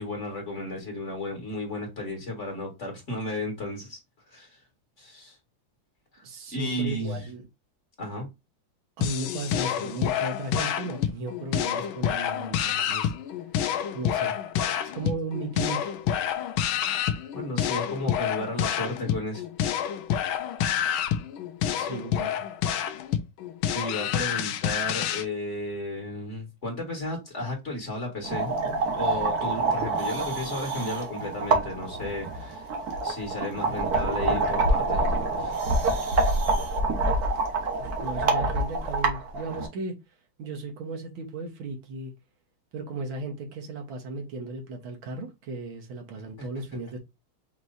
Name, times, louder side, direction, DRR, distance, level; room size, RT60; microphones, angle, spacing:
voice 1, 0.0-4.0 4.3-4.6 5.0-5.4 6.1-6.2 6.5-7.3 8.0-8.3 17.3-19.5 23.7-28.5 29.0-32.7 33.0-35.1 35.4-35.6 46.1-46.5, left 1 dB, 35° left, 1.8 m, -33 dB
voice 2, 6.2-7.4 9.0-13.1 13.9-14.5 14.9-15.9 21.6-22.5 37.8-39.9 40.4-42.1 42.7-47.0, right 2 dB, 75° right, 2.0 m, -35 dB
sound 1, 9.0-25.3, left 9 dB, 85° left, 1.4 m, -28 dB
sound 2, 28.2-39.7, right 2 dB, 55° right, 1.4 m, -26 dB
5.3 x 3.0 x 2.6 m
omnidirectional pair, 2.2 m